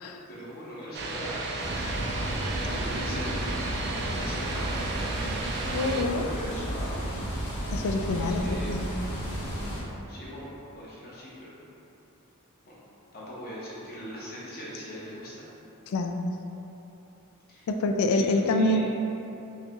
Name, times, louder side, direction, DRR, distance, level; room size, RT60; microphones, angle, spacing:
voice 1, 0.3-1.9 2.3-3.4 4.1-5.2 5.6-7.0 8.1-8.8 9.7-9.8 10.1-11.6 12.6-12.8 13.1-15.4 17.5-17.7 18.1-18.9, equal, 45° left, -7 dB, 0.9 m, -41 dB
sound 1, 0.9-6.0, right 3 dB, 50° right, 0.3 m, -34 dB
sound 2, 1.6-9.8, equal, 85° left, 1.0 m, -33 dB
voice 2, 5.7-6.2 7.7-8.9 15.9-16.2 17.7-18.9, left 2 dB, 65° left, 5 dB, 0.3 m, -26 dB
5.4 x 2.2 x 2.9 m, 2.9 s
head